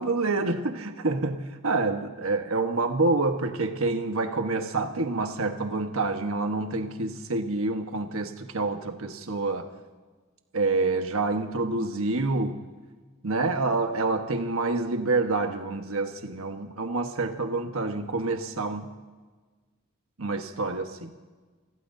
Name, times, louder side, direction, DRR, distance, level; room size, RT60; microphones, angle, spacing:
voice 1, 0.0-9.7 10.5-12.6 13.2-18.9 20.2-21.1, right 3 dB, 70° right, 6 dB, 1.3 m, -27 dB
29.5 x 16.0 x 2.7 m, 1.4 s
head